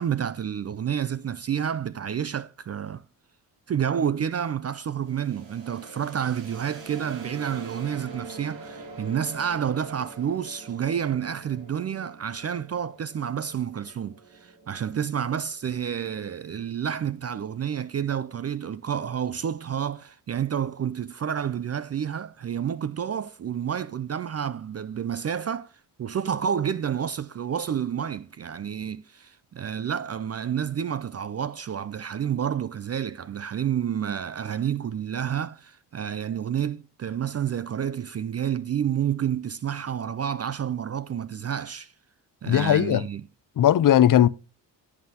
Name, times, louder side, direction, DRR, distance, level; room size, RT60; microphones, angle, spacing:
voice 1, 0.0-3.0 3.7-41.9 42.4-43.2, right 8 dB, 35° right, 0.4 m, -29 dB
sound 1, 5.0-16.7, right 3 dB, 80° right, 1.9 m, -45 dB
voice 2, 42.5-43.0 43.6-44.3, left 11 dB, 45° left, 0.6 m, -18 dB
11.0 x 7.7 x 2.8 m
supercardioid pair, 55°, 45 cm